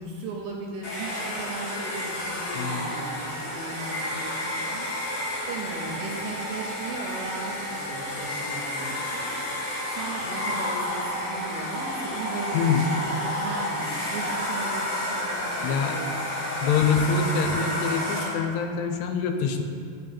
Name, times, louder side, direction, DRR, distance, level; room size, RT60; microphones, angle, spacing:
voice 1, 0.0-5.2 5.5-12.9 13.1-17.1, right 3 dB, 75° right, -1 dB, 2.3 m, -37 dB
Domestic sounds home sounds, 0.8-18.5, left 1 dB, 50° left, 1.2 m, -31 dB
voice 2, 2.6-2.9 12.5-13.0 15.6-16.0 16.6-19.6, left 5 dB, 80° left, 5 dB, 2.6 m, -25 dB
8.9 x 5.9 x 4.3 m, 2.2 s
omnidirectional pair, 4.9 m